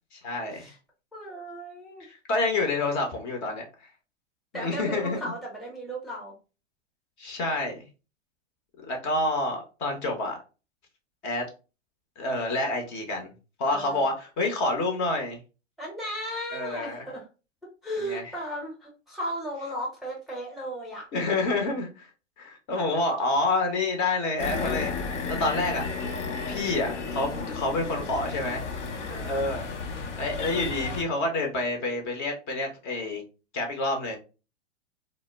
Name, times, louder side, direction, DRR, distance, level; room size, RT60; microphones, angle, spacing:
voice 1, 0.1-0.7 2.0-3.7 4.5-5.3 7.2-7.8 8.9-10.4 11.2-11.4 12.2-13.3 13.6-15.4 16.5-17.0 18.1-18.2 21.1-22.1 22.4-24.9 25.4-25.9 26.5-28.7 29.3-29.6 30.2-33.2 33.5-34.2, left 2 dB, 40° left, 3 dB, 0.8 m, -28 dB
voice 2, 1.1-2.0 4.5-6.3 13.7-14.0 15.8-17.2 17.8-21.1 27.3-27.6 29.0-29.4, equal, ahead, -4 dB, 0.7 m, -36 dB
sound 1, 24.4-31.0, left 4 dB, 75° left, 0.8 m, -33 dB
2.1 x 2.0 x 3.3 m, 0.32 s
hypercardioid pair, 120°, 36 cm